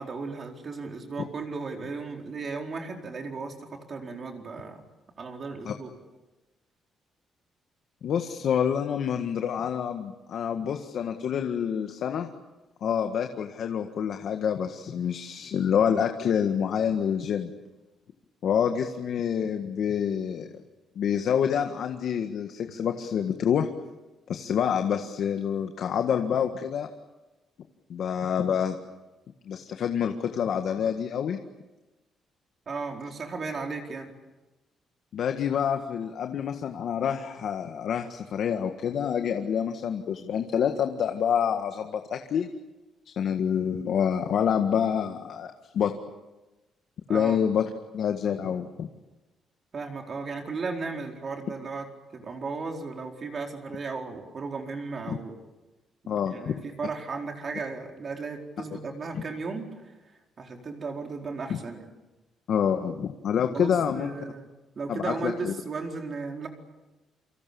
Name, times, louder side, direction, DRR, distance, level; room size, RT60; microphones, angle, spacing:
voice 1, 0.0-4.8 5.2-5.9 32.7-34.1 47.1-47.4 49.7-51.9 52.1-55.4 56.1-59.7 60.4-61.8 63.5-64.4 64.7-66.5, right 4 dB, 35° right, 2 dB, 4.4 m, -35 dB
voice 2, 8.0-12.3 12.8-17.5 18.4-20.5 20.9-23.7 24.3-26.9 27.9-28.8 29.4-31.4 35.1-42.5 43.2-45.9 47.1-47.6 47.9-48.9 55.1-55.2 56.1-56.6 61.5-61.6 62.5-64.1 64.9-65.5, left 8 dB, 60° left, 5 dB, 1.7 m, -27 dB
28.5 x 26.0 x 7.1 m, 1.1 s
cardioid pair, 150°, 0 cm